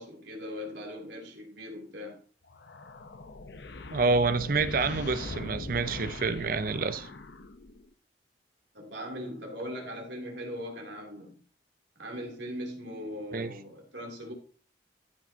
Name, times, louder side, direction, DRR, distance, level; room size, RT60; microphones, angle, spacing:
voice 1, 0.0-2.2 8.7-11.4 12.0-14.3, equal, 70° right, 3.0 m, -40 dB
sound 1, 2.5-7.9, left 2 dB, 60° left, 0.8 m, -41 dB
voice 2, 3.9-7.1 13.3-13.5, right 4 dB, 50° right, 0.6 m, -28 dB
14.0 x 5.9 x 2.8 m
head